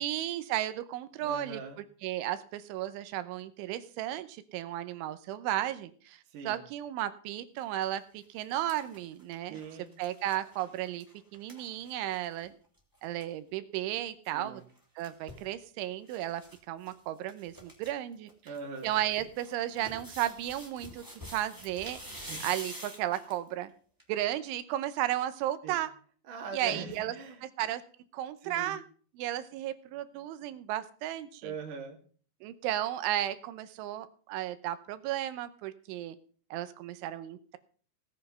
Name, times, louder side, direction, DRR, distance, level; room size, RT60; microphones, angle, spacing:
voice 1, 0.0-1.6 2.0-6.2 6.5-9.6 10.0-11.1 11.3-12.5 13.0-14.6 15.0-16.4 16.7-18.3 18.8-22.0 22.4-23.7 24.1-25.9 26.5-27.1 27.6-27.8 28.1-28.8 29.2-31.5 32.4-36.2 36.5-37.6, right 13 dB, 80° right, 12 dB, 3.1 m, -34 dB
voice 2, 1.2-1.8 6.3-6.6 9.5-9.9 14.3-14.6 18.4-19.0 22.3-22.5 25.6-25.8 26.3-27.4 28.4-28.8 31.4-32.0, right 4 dB, 50° right, 0 dB, 3.0 m, -41 dB
sound 1, 7.6-7.8 8.2-12.5 12.8-12.9 13.0-13.3 14.6-15.5 16.1-16.6 16.8-16.9 17.3-17.9 18.3-23.5 24.0-24.1, equal, 5° right, 2.2 m, -47 dB
17.5 x 7.8 x 5.6 m, 0.44 s
omnidirectional pair, 6.0 m